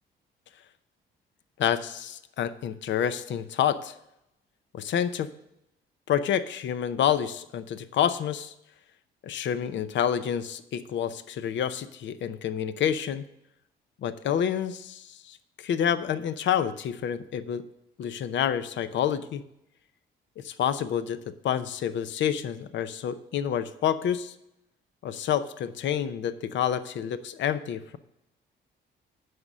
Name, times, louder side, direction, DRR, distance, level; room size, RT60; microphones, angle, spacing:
voice 1, 1.6-3.9 4.7-5.3 6.1-8.5 9.2-13.3 14.0-17.6 18.0-19.4 20.4-24.3 25.0-28.0, left 9 dB, 65° left, 13 dB, 0.7 m, -28 dB
9.6 x 6.5 x 6.1 m, 0.81 s
cardioid pair, 90°, 20 cm